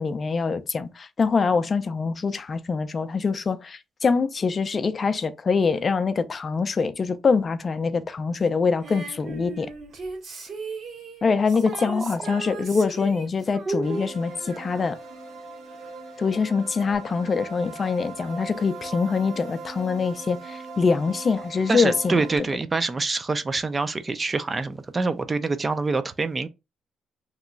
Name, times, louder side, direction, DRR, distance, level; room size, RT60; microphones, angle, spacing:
voice 1, 0.0-9.7 11.2-15.0 16.2-22.2, left 5 dB, 40° left, 0.4 m, -24 dB
Female singing, 8.8-15.8 16.9-17.0, right 4 dB, 60° right, 1.1 m, -39 dB
voice 2, 13.7-14.1 21.7-26.5, right 3 dB, 30° right, 0.4 m, -26 dB
sound 1, 13.8-22.4, right 3 dB, 85° right, 0.9 m, -40 dB
3.0 x 2.3 x 3.8 m
cardioid pair, 90°, 0 cm